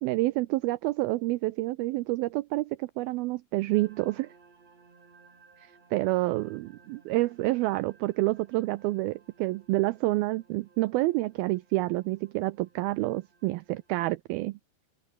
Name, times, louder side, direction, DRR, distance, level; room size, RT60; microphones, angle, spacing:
voice 1, 0.0-4.3 5.6-14.6, right 19 dB, 90° right, 2.1 m, -28 dB
sound 1, 3.7-14.0, right 4 dB, 35° right, 5.4 m, -60 dB
open air
omnidirectional pair, 5.0 m